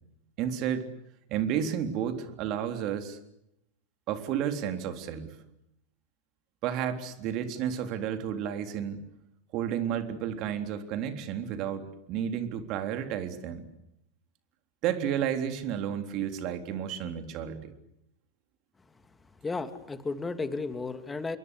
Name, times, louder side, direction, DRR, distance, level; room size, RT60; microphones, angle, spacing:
voice 1, 0.4-0.9 1.3-3.2 4.1-5.3 6.6-9.0 9.5-13.7 14.8-17.7, right 9 dB, 50° right, 7 dB, 3.7 m, -31 dB
voice 2, 19.4-21.4, left 3 dB, 15° left, 9 dB, 2.7 m, -33 dB
28.0 x 23.0 x 8.2 m, 0.83 s
hypercardioid pair, 95°, 0 cm